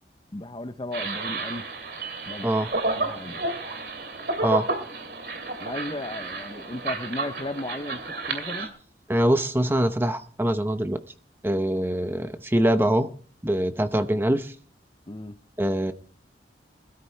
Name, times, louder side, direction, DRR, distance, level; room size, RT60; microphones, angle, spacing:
voice 1, 0.3-1.7 2.2-2.5 2.9-3.5 5.6-8.7 15.1-15.4, left 1 dB, 25° left, 0.7 m, -35 dB
sound 1, 0.9-8.7, right 3 dB, 60° right, 2.7 m, -31 dB
voice 2, 9.1-11.0 11.4-13.1 13.4-14.5 15.6-15.9, right 1 dB, 10° right, 0.7 m, -23 dB
20.5 x 13.0 x 3.3 m
head